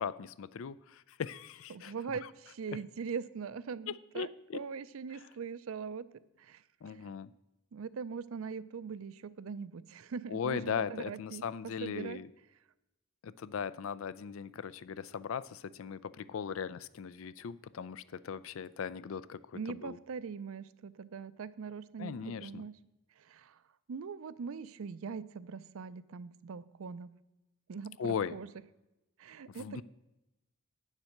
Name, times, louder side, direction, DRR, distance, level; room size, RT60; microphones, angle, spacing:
voice 1, 0.0-1.9 2.2-2.3 3.9-4.6 6.8-7.3 10.3-12.3 13.2-20.0 22.0-22.7 28.0-28.4 29.5-29.8, left 7 dB, 70° left, 18 dB, 0.4 m, -38 dB
voice 2, 1.7-7.0 7.7-10.6 10.9-11.4 11.8-12.2 19.5-22.7 23.2-23.6 23.9-27.1 27.7-28.0 28.3-28.5 29.2-29.8, right 5 dB, 75° right, 16 dB, 0.4 m, -41 dB
9.0 x 7.3 x 6.5 m, 0.94 s
head